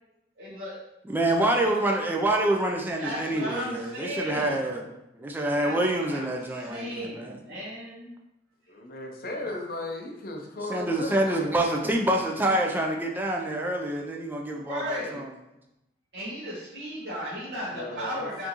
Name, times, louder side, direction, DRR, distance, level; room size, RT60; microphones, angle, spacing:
voice 1, 0.4-0.8 3.0-4.8 5.6-8.1 14.5-15.2 16.1-18.5, equal, 85° right, -9 dB, 1.0 m, -36 dB
voice 2, 1.1-4.8 5.1-7.4 10.7-15.2, right 1 dB, 10° right, 0 dB, 0.4 m, -26 dB
voice 3, 8.7-11.6 17.7-18.5, left 1 dB, 55° left, 2 dB, 0.6 m, -36 dB
4.4 x 2.6 x 2.9 m, 0.90 s
head